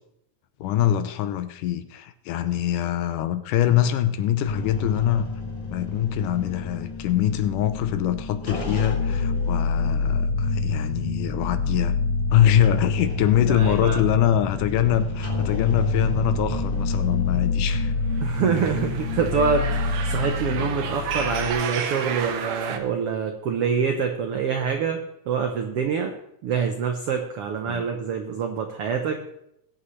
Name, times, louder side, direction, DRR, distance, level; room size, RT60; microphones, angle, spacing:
voice 1, 0.6-5.3 5.7-12.0 12.3-17.9 20.5-20.7 27.7-27.9, left 11 dB, 80° left, 10 dB, 2.2 m, -23 dB
sound 1, 4.5-21.5, left 3 dB, 15° left, 2.4 m, -27 dB
voice 2, 13.4-14.0 18.2-25.0 25.3-26.1 26.4-29.2, right 6 dB, 85° right, 4 dB, 1.3 m, -26 dB
sound 2, 18.1-22.8, right 7 dB, 65° right, 1.9 m, -32 dB
20.5 x 8.5 x 3.2 m, 0.79 s
omnidirectional pair, 3.9 m